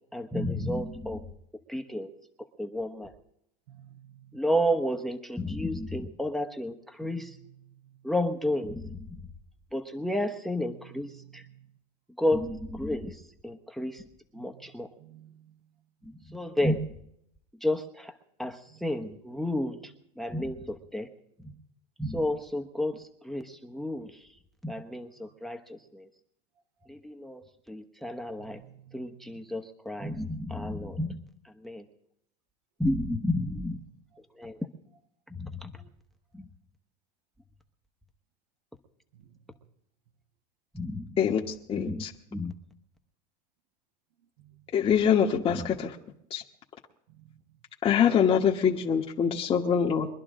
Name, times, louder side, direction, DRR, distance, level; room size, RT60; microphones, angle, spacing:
voice 1, 0.1-1.3 1.7-2.1 2.6-3.1 4.3-7.4 8.0-9.2 9.7-11.4 12.2-14.1 14.3-14.9 16.0-16.8 17.6-21.1 21.4-21.6 22.0-24.3 24.6-26.1 26.9-28.6 28.9-31.9 32.8-33.8 34.3-34.7 35.3-35.7 36.3-36.5 40.7-41.2 41.8-42.5 45.4-45.6, left 1 dB, ahead, 1.0 m, -32 dB
voice 2, 3.7-4.3 7.0-7.1 7.7-8.0 11.1-11.7 14.4-14.5 15.0-15.6 28.4-29.3 44.4-44.6 47.1-47.3, right 12 dB, 70° right, 1.4 m, -54 dB
voice 3, 41.7-42.1 44.7-45.9 46.3-46.4 47.8-50.1, left 8 dB, 30° left, 1.3 m, -24 dB
23.0 x 11.5 x 3.7 m
supercardioid pair, 120°, 21 cm